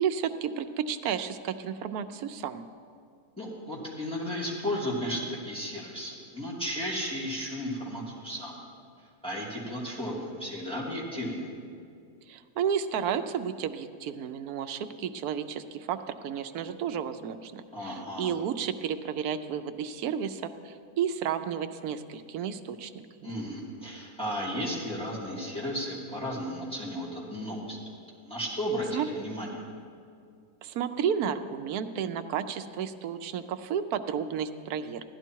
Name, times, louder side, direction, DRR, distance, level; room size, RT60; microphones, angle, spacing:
voice 1, 0.0-2.6 12.3-22.9 23.2-23.3 28.9-29.1 30.6-35.2, right 8 dB, 75° right, 9 dB, 1.1 m, -32 dB
voice 2, 3.4-8.6 9.2-11.5 17.7-18.3 23.2-27.8 28.2-29.6, equal, 5° left, -6 dB, 2.6 m, -34 dB
15.5 x 12.0 x 4.6 m, 2.4 s
omnidirectional pair, 1.6 m